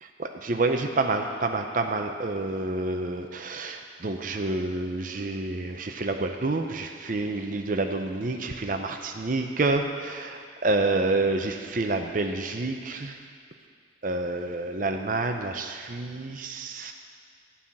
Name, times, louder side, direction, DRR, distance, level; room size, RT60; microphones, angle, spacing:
voice 1, 0.2-13.2 14.0-16.9, right 2 dB, 45° right, 5 dB, 0.6 m, -28 dB
11.5 x 5.6 x 8.6 m, 2.1 s
head